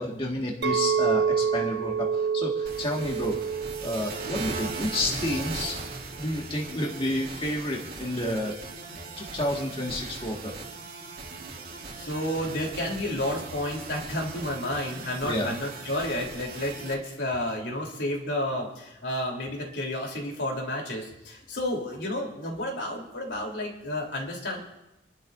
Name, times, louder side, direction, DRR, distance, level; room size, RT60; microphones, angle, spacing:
voice 1, 0.0-5.8 6.2-8.6 9.2-10.5 15.2-15.5, left 1 dB, 30° left, -2 dB, 1.9 m, -30 dB
Chink clink, 0.6-5.8, right 6 dB, 70° right, 0.7 m, -28 dB
sound 1, 2.7-16.9, right 3 dB, 55° right, 2.4 m, -39 dB
voice 2, 11.9-24.6, left 1 dB, 80° left, -1 dB, 3.6 m, -31 dB
28.0 x 12.0 x 2.7 m, 0.95 s
head